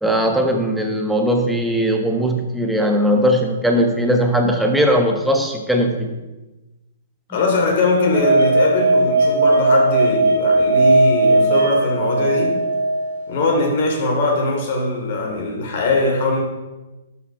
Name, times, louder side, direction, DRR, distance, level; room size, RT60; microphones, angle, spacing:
voice 1, 0.0-6.1 7.3-7.4, equal, ahead, 2 dB, 1.4 m, -19 dB
voice 2, 7.3-12.6 13.3-16.4, left 2 dB, 55° left, 1 dB, 3.0 m, -21 dB
sound 1, 8.1-13.2, right 2 dB, 75° right, 1.9 m, -17 dB
11.5 x 5.9 x 4.8 m, 1.1 s
hypercardioid pair, 120°, 0 cm